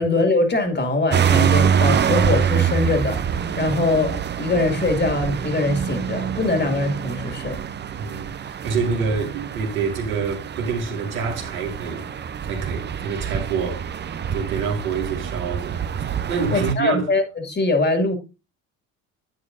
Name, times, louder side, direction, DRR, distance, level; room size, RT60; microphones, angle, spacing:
voice 1, 0.0-7.6 16.5-18.1, left 2 dB, 25° left, 2.4 m, -22 dB
sound 1, 1.1-16.7, right 7 dB, 25° right, 0.7 m, -25 dB
voice 2, 8.0-12.1 12.4-13.9 14.3-17.1, right 5 dB, 80° right, 2.5 m, -27 dB
10.0 x 8.4 x 2.7 m
hypercardioid pair, 65°, 41 cm